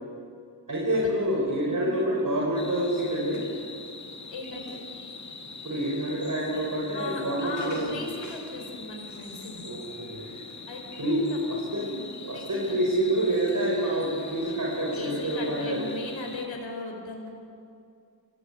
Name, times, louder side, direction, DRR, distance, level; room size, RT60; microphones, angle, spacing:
voice 1, 0.7-3.5 5.6-8.1 9.6-10.3 11.0-11.9 12.2-15.9, right 1 dB, 45° right, -3 dB, 5.2 m, -27 dB
voice 2, 1.7-2.0 4.3-4.8 6.9-9.6 10.7-11.2 11.7-12.8 14.9-17.3, left 3 dB, 90° left, 1 dB, 4.5 m, -38 dB
sound 1, 2.6-16.5, left 3 dB, 40° left, 2.5 m, -43 dB
25.5 x 17.0 x 8.4 m, 2.5 s
cardioid pair, 55°, 44 cm